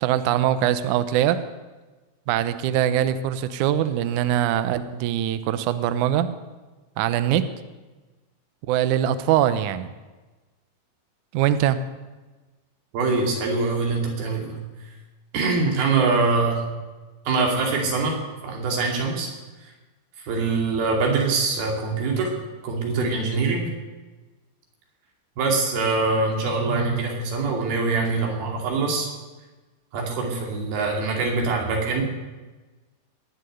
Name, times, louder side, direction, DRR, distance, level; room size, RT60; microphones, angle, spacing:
voice 1, 0.0-1.4 2.3-6.3 7.0-7.5 8.7-9.9 11.3-11.8, right 11 dB, 90° right, 12 dB, 1.7 m, -22 dB
voice 2, 12.9-14.6 15.3-16.6 17.3-18.2 18.4-19.3 20.2-22.4 22.6-23.7 25.4-29.1 29.9-32.0, right 3 dB, 70° right, 0 dB, 4.5 m, -23 dB
20.0 x 6.9 x 9.3 m, 1.2 s
omnidirectional pair, 4.6 m